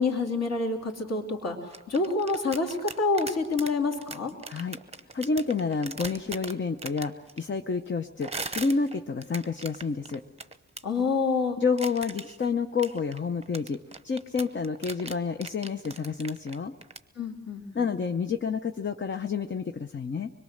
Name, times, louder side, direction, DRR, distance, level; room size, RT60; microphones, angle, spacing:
voice 1, 0.0-1.6 1.9-4.3 10.8-11.6 17.2-17.9, left 3 dB, 50° left, 2 dB, 2.8 m, -27 dB
sound 1, 1.7-7.4 8.2-10.8 11.8-12.4 12.8-17.0, right 3 dB, 20° right, 0.8 m, -39 dB
voice 2, 4.5-4.8 5.1-10.2 11.6-13.8 14.0-16.7 17.7-20.3, left 5 dB, 35° left, 7 dB, 0.8 m, -29 dB
24.5 x 22.0 x 6.5 m, 1.1 s
wide cardioid pair, 160°, 32 cm